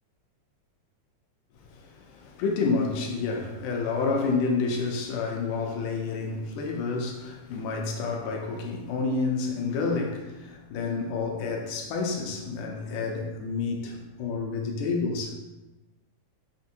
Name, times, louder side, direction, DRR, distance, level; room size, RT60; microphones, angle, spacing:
voice 1, 1.7-15.3, left 4 dB, 85° left, 2.1 m, -29 dB
5.9 x 2.6 x 2.7 m
omnidirectional pair, 3.5 m